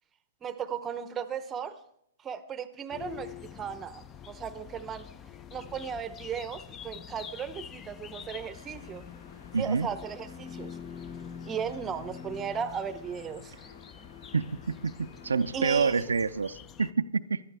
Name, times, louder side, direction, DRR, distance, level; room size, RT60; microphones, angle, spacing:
voice 1, 0.4-1.8 2.2-5.1 5.5-9.1 9.6-10.8 11.4-13.7 15.5-16.1, right 7 dB, 20° right, 0.7 m, -36 dB
sound 1, 2.9-16.9, left 8 dB, 20° left, 0.5 m, -45 dB
sound 2, 8.1-16.1, left 3 dB, 80° left, 1.4 m, -56 dB
voice 2, 9.5-9.9 14.3-14.6 14.8-17.4, right 5 dB, 90° right, 0.4 m, -27 dB
15.5 x 12.0 x 3.4 m
hypercardioid pair, 130°, 0 cm